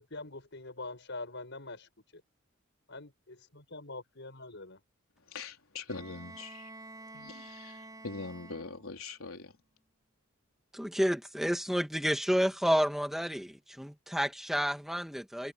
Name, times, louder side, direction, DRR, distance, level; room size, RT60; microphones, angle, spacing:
voice 1, 0.0-2.2 2.9-4.8, left 2 dB, 60° left, 7.9 m, -44 dB
voice 2, 5.2-6.7 7.0-9.6, left 3 dB, 90° left, 3.8 m, -43 dB
Bowed string instrument, 5.9-9.1, right 2 dB, 20° right, 5.0 m, -49 dB
voice 3, 10.7-15.5, equal, ahead, 2.3 m, -30 dB
head